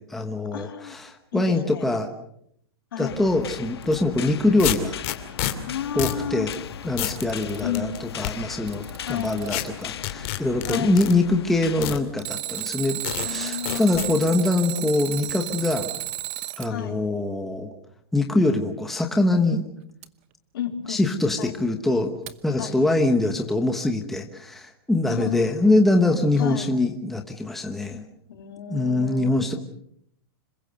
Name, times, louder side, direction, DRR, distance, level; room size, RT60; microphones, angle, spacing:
voice 1, 0.0-2.1 3.0-4.9 5.9-6.5 6.8-15.9 16.6-17.7 18.1-19.7 20.9-22.1 22.4-28.0 28.7-29.5, left 2 dB, ahead, 3 dB, 1.1 m, -23 dB
voice 2, 0.5-1.0 1.3-1.9 2.9-3.2 5.7-6.5 7.6-7.9 9.1-9.4 10.7-11.0 13.2-14.3 16.7-17.0 20.5-21.0 21.4-21.5 22.6-22.8 25.1-25.6 26.4-26.7 28.3-29.6, left 9 dB, 65° left, 5 dB, 3.7 m, -32 dB
sound 1, 3.0-12.0, left 9 dB, 85° left, 1.9 m, -38 dB
sound 2, 3.8-4.0 4.6-5.5 6.0-6.2 6.5-6.6 7.0-7.2 7.7-8.3 9.5-9.6 10.0-11.1 11.8-12.0 12.6-12.7 13.0-13.3 13.7-14.1, left 15 dB, 30° left, 2.6 m, -28 dB
Alarm, 6.8-7.8 8.4-9.8 12.2-16.7 20.0-20.1 22.3-22.4, right 15 dB, 30° right, 1.0 m, -33 dB
26.5 x 22.5 x 6.4 m, 0.70 s
supercardioid pair, 180°, 13 cm